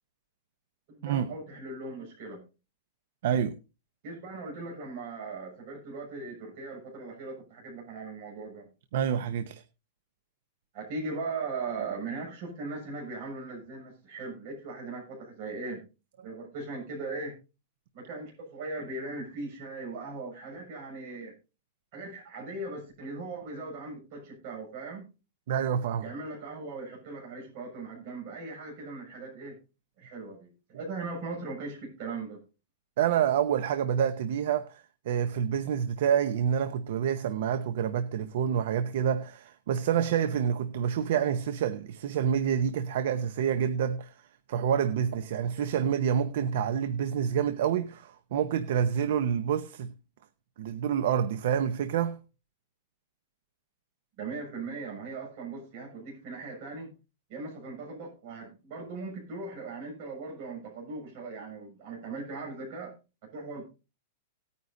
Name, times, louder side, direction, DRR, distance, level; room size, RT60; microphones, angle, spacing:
voice 1, 0.9-2.4 4.0-8.7 10.7-15.8 16.2-17.3 17.9-21.3 21.9-25.1 26.0-29.6 30.0-32.4 54.2-56.9 57.3-62.9 63.2-63.6, right 3 dB, 40° right, 6.7 m, -39 dB
voice 2, 3.2-3.5 8.9-9.6 25.5-26.1 33.0-44.1 44.5-49.9 50.6-52.2, right 8 dB, 60° right, 0.9 m, -28 dB
18.5 x 9.4 x 2.7 m
supercardioid pair, 170°, 0 cm